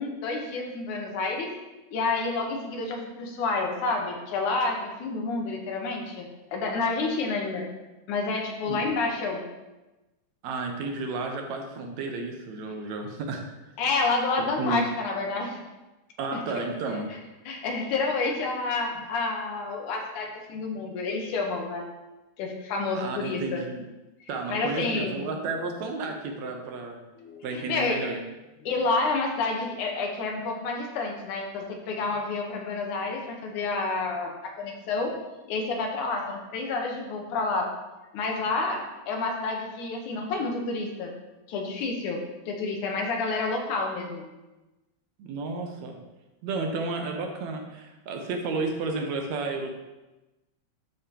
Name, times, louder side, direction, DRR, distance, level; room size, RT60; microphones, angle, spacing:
voice 1, 0.0-1.5 1.9-7.7 8.1-9.4 13.8-15.6 16.3-16.6 17.5-21.8 22.4-23.6 24.5-25.2 27.2-28.0 28.6-35.1 35.5-37.7 38.1-38.8 39.1-41.1 41.5-44.3, left 3 dB, 85° left, 1 dB, 2.6 m, -29 dB
voice 2, 10.4-13.5 14.6-14.8 16.2-17.1 23.0-23.8 24.3-27.0 27.4-28.2 45.2-46.0 46.4-49.8, right 3 dB, 75° right, 3 dB, 2.1 m, -32 dB
12.0 x 5.3 x 2.9 m, 1.1 s
omnidirectional pair, 3.4 m